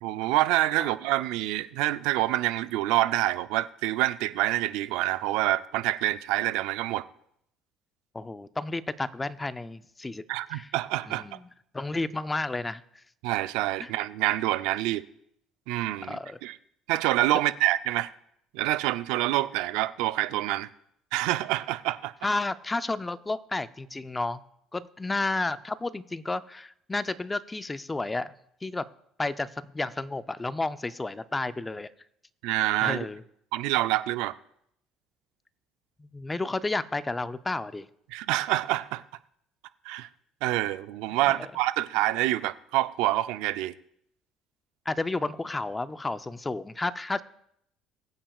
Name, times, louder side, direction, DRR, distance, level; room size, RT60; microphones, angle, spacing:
voice 1, 0.0-7.0 10.3-11.2 13.2-15.0 15.7-16.6 16.9-18.1 18.5-20.7 21.1-22.1 32.4-33.0 33.5-34.3 38.1-39.0 39.8-40.1 40.4-43.7, right 16 dB, 85° right, 0.4 m, -27 dB
voice 2, 8.1-10.2 10.5-10.7 11.1-11.5 11.7-12.8 13.8-13.9 16.1-16.4 22.2-24.4 24.7-28.3 28.6-28.8 29.2-31.9 32.8-33.2 36.0-37.9 41.4-41.5 44.9-47.2, left 2 dB, 15° left, 0.5 m, -31 dB
20.5 x 8.9 x 2.4 m
cardioid pair, 105°, 0 cm